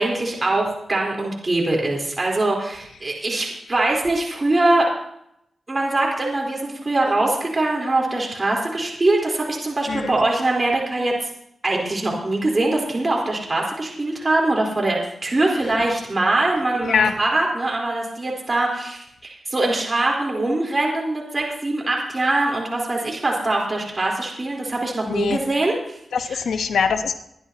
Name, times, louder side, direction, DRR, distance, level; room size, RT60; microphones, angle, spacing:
voice 1, 0.0-4.9 5.7-11.3 11.6-26.4, right 2 dB, 35° right, -1 dB, 4.0 m, -22 dB
voice 2, 25.1-25.4 26.1-27.2, left 6 dB, 90° left, 7 dB, 1.0 m, -22 dB
22.0 x 11.5 x 2.9 m, 0.76 s
cardioid pair, 70°, 0 cm